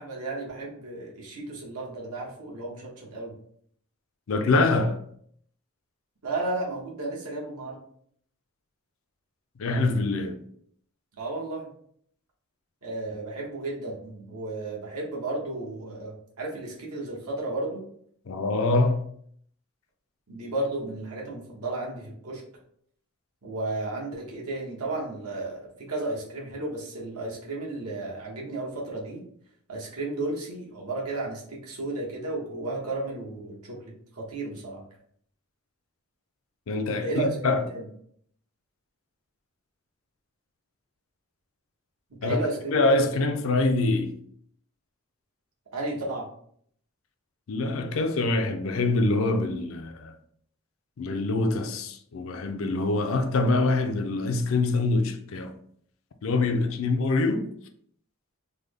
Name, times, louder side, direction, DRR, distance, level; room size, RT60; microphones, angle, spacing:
voice 1, 0.0-3.3 6.2-7.8 11.2-11.7 12.8-17.8 20.3-22.4 23.4-29.2 29.7-34.8 36.9-37.9 42.2-42.8 45.7-46.3, right 2 dB, 85° right, 1.0 m, -33 dB
voice 2, 4.3-5.0 9.6-10.4 18.3-19.0 36.7-37.6 42.2-42.4 42.7-44.1 47.5-50.2 51.0-55.5 56.2-57.4, left 2 dB, 65° left, 0.4 m, -25 dB
3.3 x 2.1 x 3.4 m
head